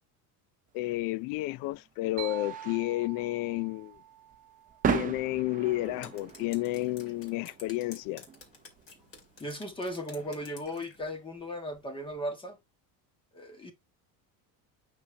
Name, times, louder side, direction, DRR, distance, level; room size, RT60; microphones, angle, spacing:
voice 1, 0.7-4.0 4.9-8.3, left 18 dB, 55° left, 0.5 m, -31 dB
sound 1, 0.9-12.2, right 7 dB, 20° right, 0.7 m, -39 dB
sound 2, 2.2-5.9, right 12 dB, 50° right, 1.1 m, -46 dB
Drip, 5.8-11.0, left 4 dB, 35° left, 2.5 m, -53 dB
voice 2, 9.4-12.6 13.3-13.7, equal, 10° left, 1.6 m, -37 dB
8.6 x 6.2 x 2.8 m
cardioid pair, 170°, 40 cm